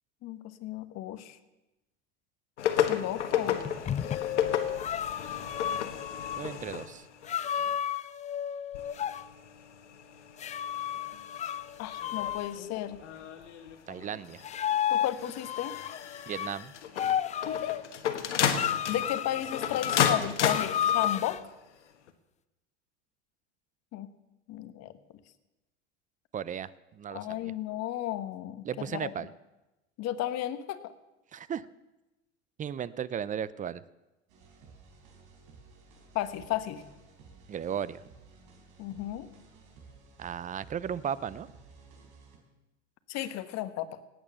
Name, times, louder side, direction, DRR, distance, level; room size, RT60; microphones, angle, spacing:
voice 1, 0.2-1.4 2.9-3.6 11.8-13.0 14.9-15.7 17.4-17.8 18.9-21.4 23.9-24.1 24.5-24.9 27.1-28.6 28.9-29.1 30.0-30.8 36.1-36.8 38.8-39.3 43.1-43.9, left 13 dB, 45° left, 11 dB, 1.3 m, -34 dB
sound 1, 2.6-7.7 8.7-21.4 22.1-22.2, left 9 dB, 85° left, 1.3 m, -34 dB
sound 2, 3.5-6.4 7.3-9.2 10.4-12.6 14.4-16.5 17.0-17.8 18.5-21.4, left 10 dB, 20° left, 0.4 m, -32 dB
voice 2, 6.4-7.1 13.9-14.4 16.3-16.7 26.3-27.5 28.6-29.3 31.3-31.7 32.6-33.8 37.5-38.0 40.2-41.5, right 8 dB, 20° right, 18 dB, 0.6 m, -35 dB
sound 3, 34.3-42.4, right 4 dB, 60° right, 4.4 m, -55 dB
18.0 x 9.1 x 6.9 m, 1.0 s
hypercardioid pair, 95°, 35 cm